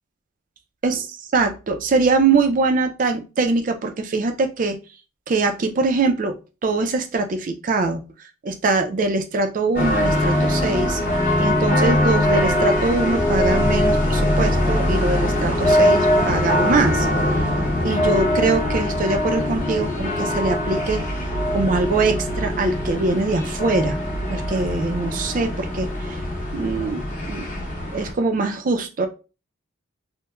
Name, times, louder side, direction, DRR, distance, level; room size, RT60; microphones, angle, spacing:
voice 1, 1.3-4.8 5.3-6.4 6.6-8.1 8.4-11.0 11.4-17.1 17.8-21.0 21.5-24.0 24.3-26.2 26.5-27.5 27.9-29.1, right 3 dB, 40° right, 7 dB, 0.3 m, -22 dB
sound 1, 9.8-28.1, left 1 dB, 40° left, 0.7 m, -22 dB
2.9 x 2.1 x 2.2 m, 0.31 s
head